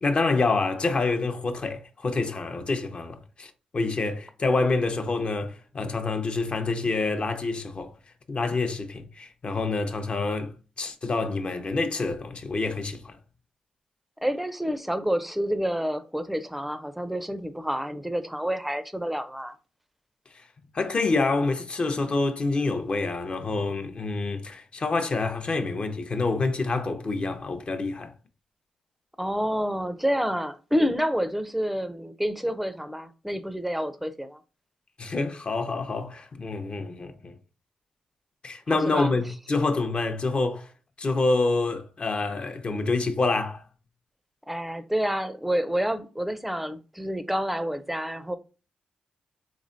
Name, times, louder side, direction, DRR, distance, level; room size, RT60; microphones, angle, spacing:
voice 1, 0.0-7.9 8.3-10.5 10.8-13.2 20.3-20.4 20.7-28.1 35.0-37.4 38.4-40.7 41.0-43.6, left 3 dB, 45° left, 0.7 m, -27 dB
voice 2, 14.2-19.6 29.2-34.4 38.9-39.1 44.5-48.4, equal, 5° right, 0.5 m, -28 dB
3.6 x 3.1 x 2.6 m
supercardioid pair, 55°, 3 cm